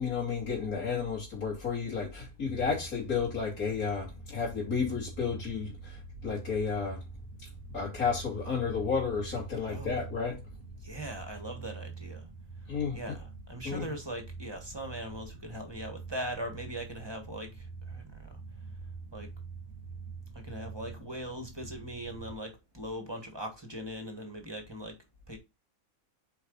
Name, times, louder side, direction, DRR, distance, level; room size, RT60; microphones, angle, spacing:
voice 1, 0.0-7.0 7.7-10.4 12.7-13.2 13.6-13.9, left 5 dB, 80° left, 3.0 m, -32 dB
sound 1, 2.5-22.3, right 5 dB, 15° left, 3.6 m, -46 dB
voice 2, 9.7-10.0 10.8-12.3 12.9-18.4 19.1-19.3 20.3-25.0 25.3-25.4, right 1 dB, 20° right, 1.5 m, -40 dB
8.2 x 4.7 x 3.9 m
omnidirectional pair, 1.5 m